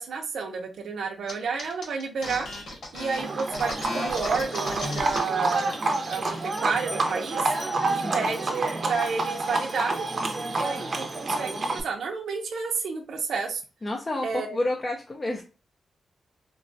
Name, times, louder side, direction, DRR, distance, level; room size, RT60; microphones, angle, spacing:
voice 1, 0.0-2.5 2.9-5.7 6.1-7.5 7.9-10.1 10.5-13.6 14.2-14.6, right 5 dB, 80° right, 2 dB, 0.6 m, -31 dB
sound 1, 1.3-1.4 1.6-5.2 5.5-5.8 6.1-6.6, left 2 dB, 80° left, 1.2 m, -35 dB
Livestock farm animals working animals, 3.2-11.8, right 2 dB, 40° right, 0.6 m, -28 dB
voice 2, 7.9-8.3 13.8-15.4, left 2 dB, 25° left, 0 dB, 0.5 m, -30 dB
3.9 x 2.2 x 2.5 m, 0.31 s
wide cardioid pair, 135°, 0 cm